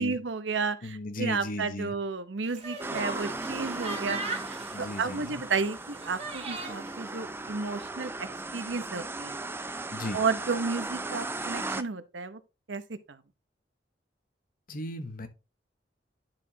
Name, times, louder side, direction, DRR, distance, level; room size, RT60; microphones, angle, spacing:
voice 1, 0.0-4.2 4.4-8.3 8.5-9.4 10.1-12.4 12.7-13.2, right 4 dB, 75° right, 0.8 m, -32 dB
voice 2, 0.8-1.9 4.7-5.4 9.9-10.2 14.7-15.3, left 1 dB, 50° left, 1.0 m, -36 dB
sound 1, 2.4-6.9, right 3 dB, 40° right, 2.1 m, -39 dB
sound 2, 2.8-11.8, right 2 dB, 15° right, 0.4 m, -37 dB
10.5 x 4.9 x 2.7 m
head